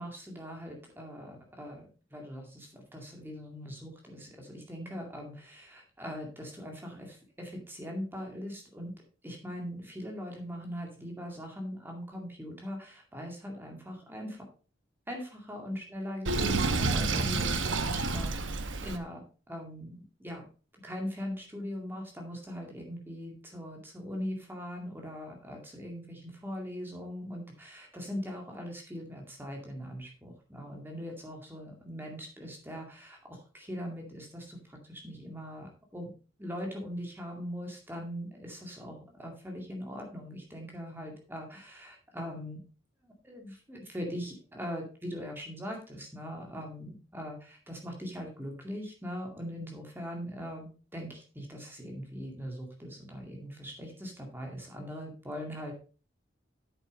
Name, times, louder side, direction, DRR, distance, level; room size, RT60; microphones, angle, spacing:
voice 1, 0.0-8.9 9.2-14.5 15.1-20.4 20.8-36.1 36.4-42.6 43.0-55.7, equal, 10° right, 1 dB, 2.2 m, -41 dB
Sink (filling or washing), 16.2-19.0, right 3 dB, 85° right, 1.0 m, -29 dB
8.7 x 7.2 x 4.1 m, 0.34 s
head